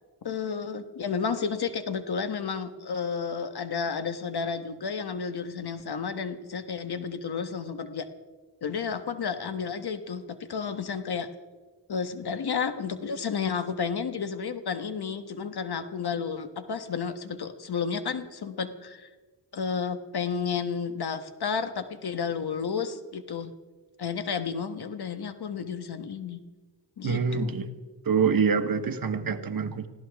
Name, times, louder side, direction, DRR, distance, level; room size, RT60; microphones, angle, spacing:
voice 1, 0.2-8.1 8.6-10.2 10.5-11.3 11.9-19.1 19.5-23.5 24.0-26.4 27.0-27.5, left 6 dB, 60° left, 9 dB, 1.3 m, -31 dB
voice 2, 27.0-27.7 28.0-29.9, right 6 dB, 50° right, 9 dB, 1.2 m, -25 dB
25.5 x 15.5 x 3.5 m, 1.3 s
cardioid pair, 75°, 44 cm